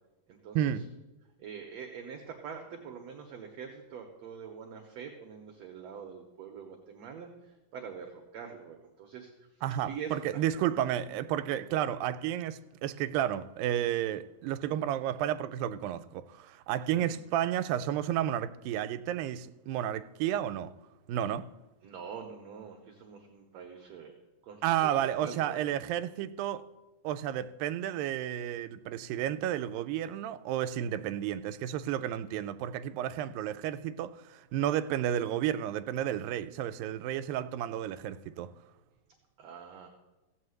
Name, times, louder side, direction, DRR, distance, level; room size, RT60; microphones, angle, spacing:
voice 1, 0.3-0.8 1.4-9.3 9.9-10.7 16.9-17.3 21.8-24.1 24.4-25.7 39.4-39.9, right 6 dB, 65° right, 1.7 m, -44 dB
voice 2, 9.6-20.7 21.1-21.5 24.6-26.7 27.0-38.5, right 11 dB, 85° right, 2.3 m, -32 dB
16.0 x 5.7 x 7.9 m
omnidirectional pair, 4.1 m